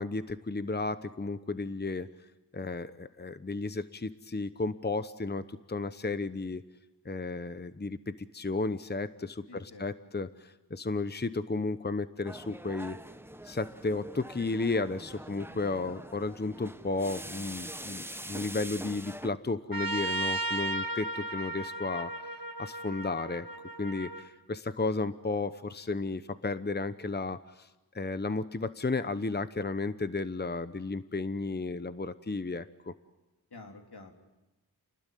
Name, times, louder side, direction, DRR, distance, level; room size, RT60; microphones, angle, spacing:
voice 1, 0.0-2.1 2.5-6.6 7.0-13.0 13.4-23.5 23.8-27.7 27.9-32.9, left 3 dB, 25° left, 12 dB, 0.9 m, -33 dB
voice 2, 9.5-9.9 15.8-16.0 33.5-34.1, left 3 dB, 80° left, 3 dB, 3.4 m, -48 dB
sound 1, 12.2-19.3, right 1 dB, 5° right, 1.0 m, -44 dB
Trumpet, 19.7-24.3, right 2 dB, 60° right, 2.0 m, -35 dB
29.5 x 20.0 x 9.3 m, 1.1 s
wide cardioid pair, 50°, 39 cm